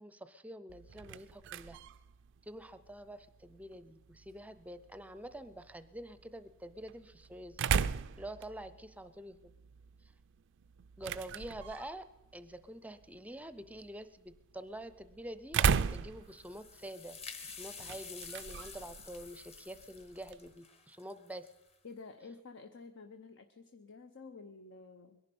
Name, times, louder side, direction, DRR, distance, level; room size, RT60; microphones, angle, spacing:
voice 1, 0.0-1.8 2.4-7.6 8.2-9.4 11.0-12.1 12.3-21.5, right 1 dB, 5° right, 13 dB, 0.6 m, -47 dB
sound 1, 0.7-20.6, right 6 dB, 60° right, 0.4 m, -39 dB
sound 2, 16.2-21.7, left 5 dB, 30° left, 1.3 m, -49 dB
voice 2, 21.8-25.2, left 4 dB, 60° left, 8 dB, 0.7 m, -51 dB
22.0 x 11.0 x 5.3 m, 1.0 s
head